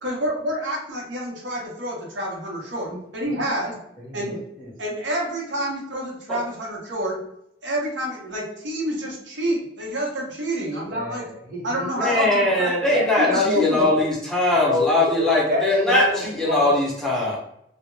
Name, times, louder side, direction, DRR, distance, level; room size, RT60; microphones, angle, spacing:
voice 1, 0.0-3.8 4.1-4.4 4.8-7.2 7.6-11.3 11.6-12.7 13.2-13.9, equal, 75° right, -2 dB, 0.7 m, -28 dB
voice 2, 4.0-4.7 10.9-12.6 12.9-14.0 14.5-16.8, left 2 dB, 50° right, -3 dB, 0.8 m, -27 dB
voice 3, 12.0-16.0 16.4-17.4, left 2 dB, 5° left, -5 dB, 0.5 m, -21 dB
2.2 x 2.0 x 3.0 m, 0.77 s
head